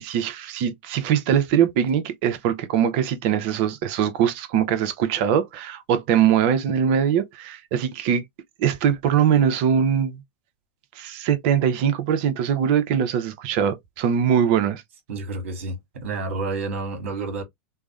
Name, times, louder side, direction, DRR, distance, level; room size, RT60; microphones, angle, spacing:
voice 1, 0.0-8.2 8.6-10.2 11.0-14.8, right 8 dB, 55° right, 0.6 m, -22 dB
voice 2, 15.1-17.4, right 3 dB, 75° right, 1.1 m, -30 dB
3.3 x 2.1 x 2.3 m
hypercardioid pair, 115°, 7 cm